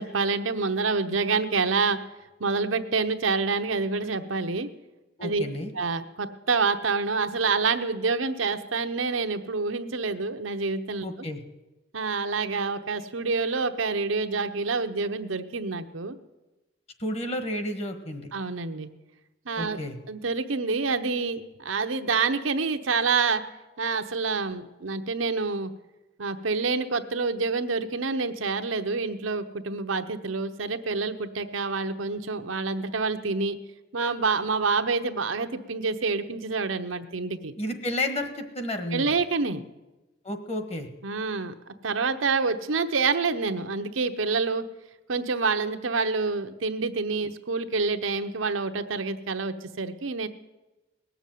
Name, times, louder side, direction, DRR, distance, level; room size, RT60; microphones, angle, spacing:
voice 1, 0.0-2.0 2.4-4.7 5.2-5.4 5.7-11.0 11.9-16.2 18.3-18.9 19.5-19.8 20.1-23.4 23.8-25.7 26.2-33.6 33.9-37.5 38.9-39.6 41.0-44.7 45.1-50.3, right 4 dB, 85° right, 8 dB, 0.9 m, -27 dB
voice 2, 5.2-5.7 11.0-11.4 17.0-18.3 19.6-20.0 37.6-39.1 40.2-40.9, left 1 dB, 30° left, 7 dB, 1.4 m, -31 dB
18.5 x 7.1 x 9.2 m, 1.1 s
head